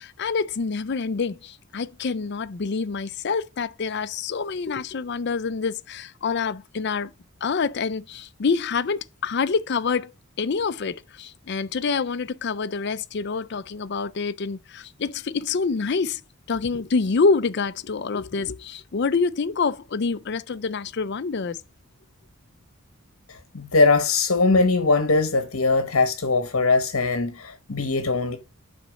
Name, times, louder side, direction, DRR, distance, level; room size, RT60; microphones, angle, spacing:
voice 1, 0.0-7.1 7.4-10.1 10.4-16.2 16.5-21.6, left 4 dB, 50° left, 0.5 m, -26 dB
voice 2, 23.5-28.4, left 3 dB, 70° left, 1.1 m, -21 dB
6.6 x 4.3 x 4.0 m
head